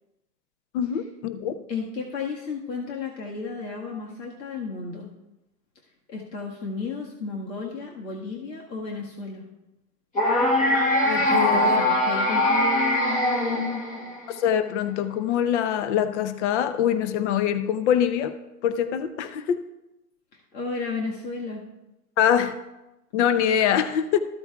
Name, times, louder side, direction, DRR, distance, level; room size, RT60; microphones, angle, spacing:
voice 1, 0.7-1.6 11.0-11.8 14.3-18.3 18.6-19.6 22.2-22.6 23.1-24.2, left 9 dB, 45° left, 11 dB, 0.7 m, -24 dB
voice 2, 1.7-5.1 6.1-9.5 11.3-13.8 20.5-21.6, left 4 dB, 90° left, -2 dB, 1.8 m, -33 dB
sound 1, 10.2-14.3, left 1 dB, 15° left, 1.1 m, -22 dB
14.0 x 8.2 x 2.4 m, 0.95 s
hypercardioid pair, 145°, 49 cm